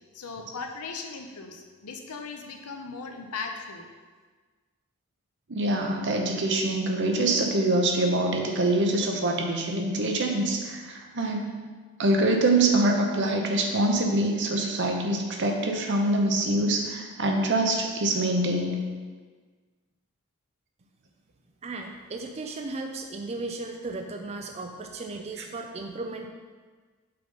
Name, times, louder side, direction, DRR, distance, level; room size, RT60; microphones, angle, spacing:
voice 1, 0.1-3.9, left 4 dB, 85° left, 4 dB, 0.7 m, -38 dB
voice 2, 5.5-11.5 12.0-18.8, right 2 dB, 55° right, 2 dB, 0.8 m, -25 dB
voice 3, 21.6-26.3, right 3 dB, 30° right, 3 dB, 0.4 m, -36 dB
5.6 x 4.0 x 5.2 m, 1.4 s
head